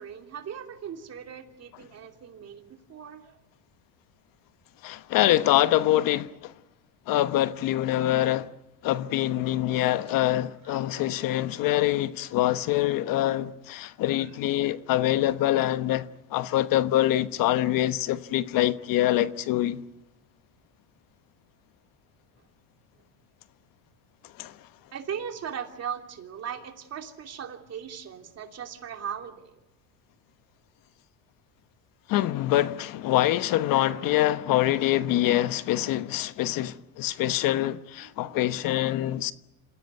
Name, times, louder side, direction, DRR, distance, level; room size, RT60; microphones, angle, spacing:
voice 1, 0.0-3.4 10.6-10.8 24.9-29.6 38.0-38.7, right 8 dB, 40° right, 2.9 m, -38 dB
voice 2, 4.8-6.5 7.1-8.5 8.8-19.8 24.4-24.6 32.1-39.3, left 14 dB, 60° left, 1.1 m, -25 dB
27.5 x 16.5 x 9.3 m
cardioid pair, 115°, 38 cm